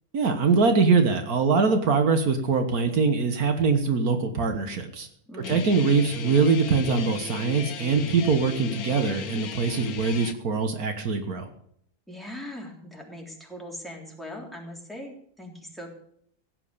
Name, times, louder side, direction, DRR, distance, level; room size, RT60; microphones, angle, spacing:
voice 1, 0.1-5.1 5.5-11.5, right 4 dB, 80° right, 7 dB, 1.8 m, -23 dB
voice 2, 5.3-5.8 12.1-15.9, left 1 dB, ahead, -1 dB, 3.5 m, -40 dB
Guitar, 5.4-10.3, left 8 dB, 75° left, 1.3 m, -36 dB
16.5 x 8.4 x 6.7 m, 0.65 s
omnidirectional pair, 1.6 m